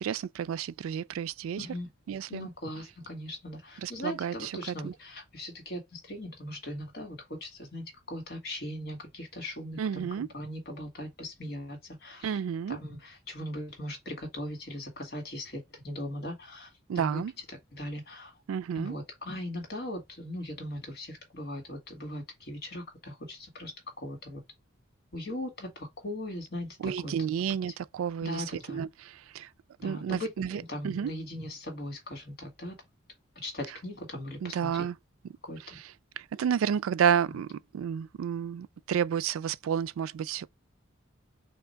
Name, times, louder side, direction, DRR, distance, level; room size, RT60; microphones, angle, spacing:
voice 1, 0.0-1.7 2.1-2.5 3.8-4.9 9.8-10.3 12.2-12.8 16.9-17.3 18.5-18.9 26.8-29.5 29.8-31.1 34.4-35.0 35.6-40.5, right 8 dB, 85° right, 0.3 m, -31 dB
voice 2, 1.6-1.9 2.3-12.4 12.7-16.7 17.0-17.2 17.7-18.3 18.8-23.7 24.0-24.4 25.1-27.1 28.2-28.8 29.8-32.8 33.4-34.9 35.4-35.8, left 1 dB, 50° left, 1.8 m, -39 dB
3.5 x 2.9 x 4.4 m
head